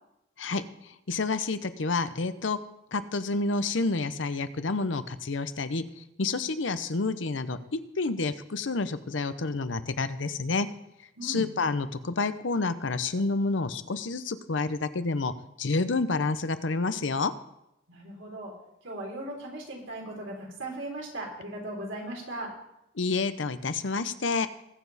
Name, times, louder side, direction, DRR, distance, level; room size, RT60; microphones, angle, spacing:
voice 1, 1.1-2.6 2.9-5.8 6.2-10.7 11.2-15.3 15.6-17.3 23.0-24.5, left 3 dB, 80° left, 12 dB, 0.8 m, -29 dB
voice 2, 17.9-18.5 18.8-22.5, right 1 dB, 90° right, -1 dB, 3.7 m, -38 dB
21.0 x 7.1 x 4.1 m, 0.85 s
head